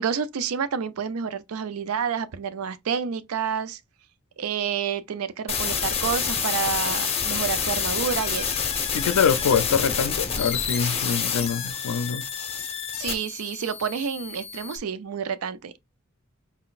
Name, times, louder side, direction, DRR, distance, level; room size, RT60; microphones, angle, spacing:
voice 1, 0.0-3.8 4.4-8.5 12.9-15.8, right 7 dB, 80° right, 0.4 m, -29 dB
sound 1, 5.5-14.8, left 7 dB, 30° left, 0.8 m, -28 dB
voice 2, 8.9-12.3, left 6 dB, 90° left, 0.4 m, -24 dB
4.3 x 3.8 x 2.4 m
head